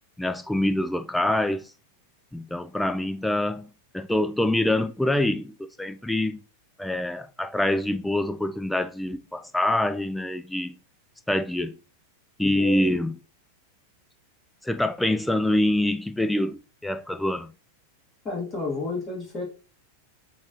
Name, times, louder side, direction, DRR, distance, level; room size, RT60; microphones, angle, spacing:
voice 1, 0.2-1.7 2.3-6.4 6.8-10.8 11.3-11.8 12.4-13.1 14.6-17.5, left 1 dB, 5° left, 0.4 m, -25 dB
voice 2, 12.4-12.9 18.2-19.4, left 2 dB, 25° left, 1.7 m, -31 dB
7.1 x 2.4 x 2.9 m
figure-of-eight pair, 90°, 0 cm